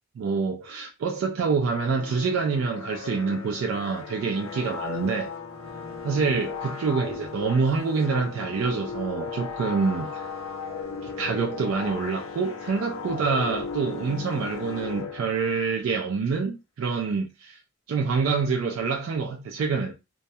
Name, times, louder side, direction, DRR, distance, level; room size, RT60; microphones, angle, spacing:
voice 1, 0.2-5.3 6.0-10.2 11.0-17.6 17.9-19.9, right 4 dB, 80° right, 0.3 m, -26 dB
sound 1, 1.6-15.8, left 5 dB, 75° left, 0.5 m, -36 dB
2.2 x 2.0 x 2.6 m
head